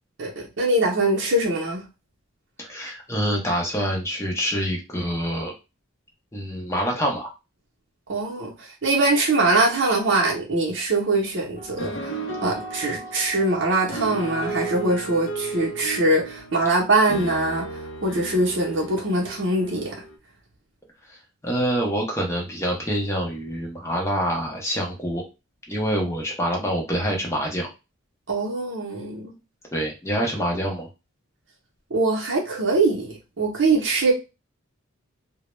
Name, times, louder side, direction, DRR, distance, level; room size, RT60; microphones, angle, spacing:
voice 1, 0.2-1.8 8.1-20.0 28.3-29.3 31.9-34.1, right 2 dB, 60° right, 0.6 m, -23 dB
voice 2, 2.6-5.5 6.3-7.3 21.4-25.2 25.7-27.7 29.7-30.9, equal, 15° left, 0.6 m, -26 dB
sound 1, 11.6-20.2, right 3 dB, 65° left, 0.5 m, -34 dB
2.2 x 2.0 x 3.0 m
head